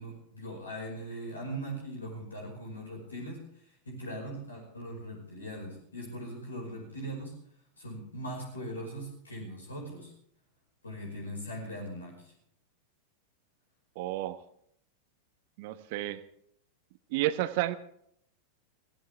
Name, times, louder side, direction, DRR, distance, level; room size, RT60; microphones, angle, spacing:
voice 1, 0.0-7.4 7.8-10.1 10.8-12.3, right 1 dB, 75° left, 0 dB, 5.3 m, -40 dB
voice 2, 14.0-14.4 15.6-16.2 17.1-17.7, right 15 dB, 50° right, 12 dB, 1.2 m, -31 dB
22.5 x 17.0 x 3.5 m, 0.68 s
figure-of-eight pair, 90°, 0 cm